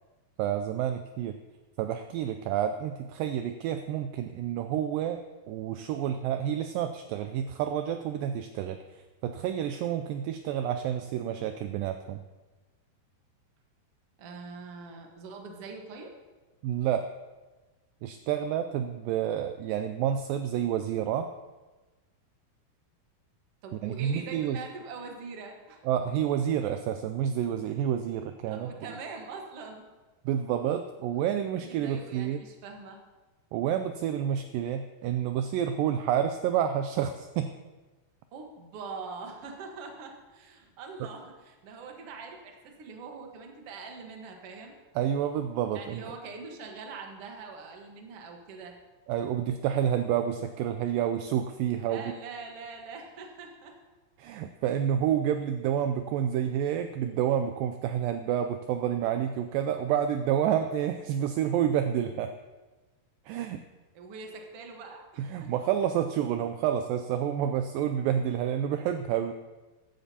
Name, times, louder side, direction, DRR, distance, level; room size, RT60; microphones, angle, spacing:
voice 1, 0.4-1.4 1.8-12.2 16.6-17.1 18.0-21.3 23.7-24.6 25.9-28.7 30.3-32.5 33.5-37.5 41.0-41.1 45.0-46.1 49.1-52.0 54.2-62.3 63.3-63.6 65.2-69.3, right 9 dB, 80° right, 8 dB, 2.1 m, -29 dB
voice 2, 14.2-16.1 23.6-25.8 28.5-29.9 31.6-33.0 38.3-44.8 45.7-48.7 51.8-53.7 63.9-65.5, right 4 dB, 55° right, 2 dB, 1.8 m, -43 dB
15.5 x 11.5 x 2.8 m, 1.2 s
omnidirectional pair, 4.3 m